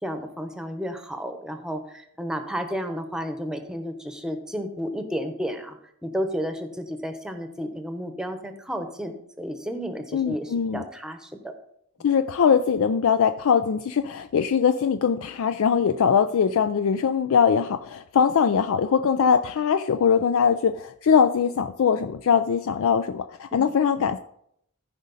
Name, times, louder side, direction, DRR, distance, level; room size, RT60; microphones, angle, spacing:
voice 1, 0.0-5.8 6.0-11.5 23.5-23.6, equal, 5° right, 6 dB, 1.0 m, -32 dB
voice 2, 10.1-10.8 12.0-24.2, left 7 dB, 65° left, 10 dB, 0.4 m, -21 dB
14.0 x 5.1 x 4.1 m, 0.73 s
head